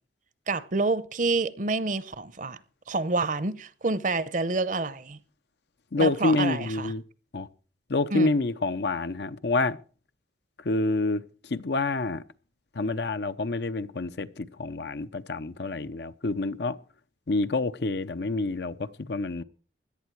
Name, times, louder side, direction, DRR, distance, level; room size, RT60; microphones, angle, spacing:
voice 1, 0.5-2.6 2.9-5.2 6.0-6.9 8.1-8.3, right 3 dB, 45° right, 0.7 m, -28 dB
voice 2, 5.9-7.0 7.3-7.5 7.9-9.8 10.6-12.2 12.7-16.8 17.3-19.4, left 3 dB, 70° left, 0.7 m, -27 dB
17.0 x 11.5 x 4.6 m
head